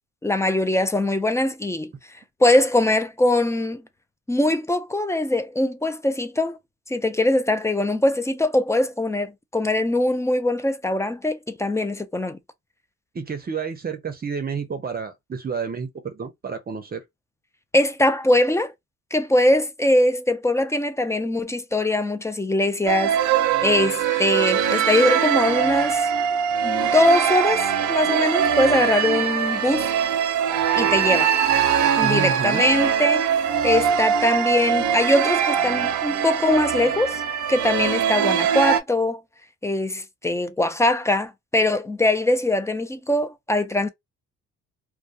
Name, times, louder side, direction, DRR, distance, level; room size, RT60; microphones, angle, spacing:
voice 1, 0.2-1.9 2.4-3.8 4.3-6.6 6.9-12.4 17.7-18.7 19.1-26.1 26.6-29.9 30.7-31.4 32.0-33.3 33.6-37.2 37.5-39.2 39.6-43.9, left 1 dB, 10° left, 0.3 m, -22 dB
voice 2, 13.1-17.0 32.0-32.7, right 6 dB, 30° right, 0.6 m, -30 dB
sound 1, 22.9-38.8, right 8 dB, 75° right, 0.6 m, -22 dB
2.2 x 2.2 x 2.6 m
cardioid pair, 90°, 30 cm